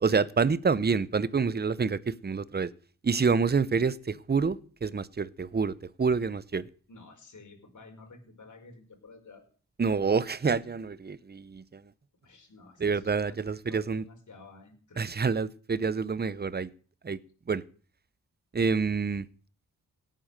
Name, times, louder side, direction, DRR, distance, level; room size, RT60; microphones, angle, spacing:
voice 1, 0.0-2.7 3.0-6.7 9.8-11.8 12.8-14.0 15.0-16.7 17.0-17.2 17.5-17.6 18.5-19.3, right 5 dB, 25° right, 18 dB, 0.7 m, -27 dB
voice 2, 6.9-9.4 12.2-15.0, left 3 dB, 50° left, 3 dB, 5.3 m, -52 dB
18.0 x 9.1 x 6.6 m, 0.42 s
wide cardioid pair, 95°, 37 cm